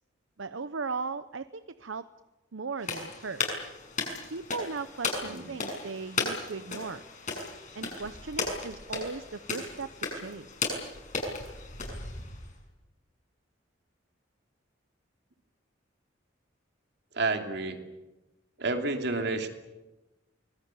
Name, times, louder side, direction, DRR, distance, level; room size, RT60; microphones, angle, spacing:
voice 1, 0.4-2.0 2.5-3.4 4.3-7.0 7.7-10.8, right 4 dB, 80° right, 12 dB, 0.8 m, -38 dB
sound 1, 2.8-12.5, left 3 dB, 40° left, 6.7 m, -35 dB
voice 2, 17.1-17.8 18.6-19.5, right 3 dB, 60° right, 5 dB, 2.9 m, -30 dB
24.5 x 20.5 x 9.2 m, 1.1 s
head